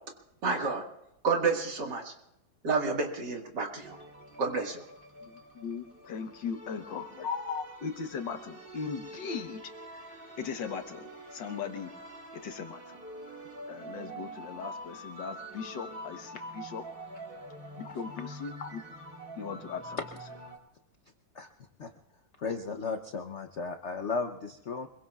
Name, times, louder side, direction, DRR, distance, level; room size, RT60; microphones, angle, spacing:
voice 1, 0.4-0.8 1.2-2.1 2.6-4.0 4.4-4.8, right 4 dB, 60° right, 2 dB, 2.5 m, -29 dB
sound 1, 3.8-20.6, right 1 dB, 30° right, 2.0 m, -46 dB
voice 2, 5.2-11.9 12.3-13.0 13.3-13.4 13.7-16.8 17.8-18.8 19.4-20.0, left 6 dB, 70° left, 7 dB, 1.8 m, -38 dB
voice 3, 22.4-24.9, left 4 dB, 55° left, 5 dB, 0.8 m, -35 dB
25.5 x 22.5 x 2.4 m, 0.83 s
omnidirectional pair, 2.1 m